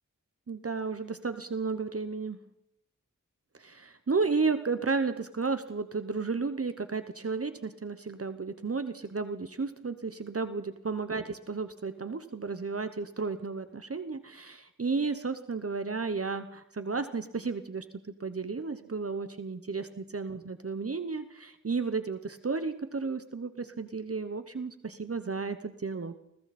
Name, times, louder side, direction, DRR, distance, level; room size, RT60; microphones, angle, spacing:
voice 1, 0.5-2.4 3.6-17.8 18.2-26.1, right 4 dB, 45° right, 10 dB, 1.0 m, -33 dB
29.5 x 21.0 x 4.3 m, 0.79 s
wide cardioid pair, 85°, 31 cm